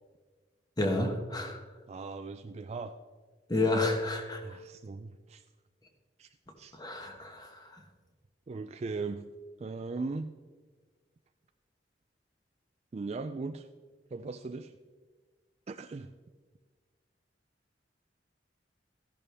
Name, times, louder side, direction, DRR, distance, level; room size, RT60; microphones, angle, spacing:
voice 1, 0.8-1.6 3.5-4.6 6.7-7.8, left 2 dB, 20° left, 4 dB, 1.3 m, -31 dB
voice 2, 1.9-3.0 4.4-5.4 6.2-6.3 6.6-6.8 8.5-9.2 9.6-10.3 12.9-13.7 14.1-14.8 15.7-16.1, right 3 dB, 35° right, 8 dB, 0.3 m, -38 dB
14.0 x 11.0 x 3.5 m, 1.4 s
head